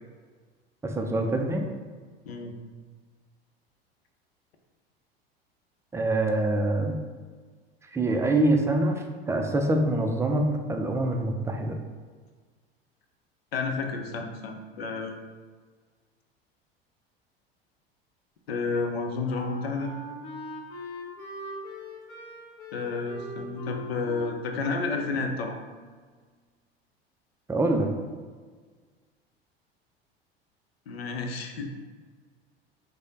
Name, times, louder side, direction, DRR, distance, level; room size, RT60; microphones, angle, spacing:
voice 1, 0.8-1.6 5.9-7.0 7.9-11.8 27.5-27.9, right 2 dB, 10° right, 3 dB, 0.4 m, -25 dB
voice 2, 13.5-15.2 18.5-20.0 22.7-25.6 30.9-31.7, left 4 dB, 75° left, 4 dB, 0.6 m, -31 dB
Wind instrument woodwind instrument, 19.2-26.1, left 1 dB, 45° left, 1.2 m, -42 dB
4.8 x 2.1 x 3.9 m, 1.5 s
figure-of-eight pair, 75°, 31 cm